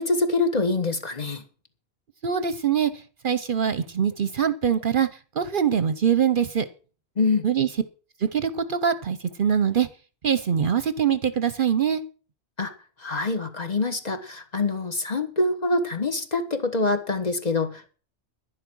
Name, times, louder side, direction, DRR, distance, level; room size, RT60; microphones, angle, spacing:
voice 1, 0.0-1.4 7.2-7.5 12.6-12.7 13.0-17.9, left 3 dB, 40° left, 7 dB, 1.6 m, -25 dB
voice 2, 2.2-2.9 3.2-5.1 5.4-6.7 7.4-7.7 8.2-9.9 10.2-12.0, right 8 dB, 55° right, 13 dB, 0.8 m, -23 dB
11.0 x 10.5 x 6.1 m, 0.38 s
omnidirectional pair, 1.1 m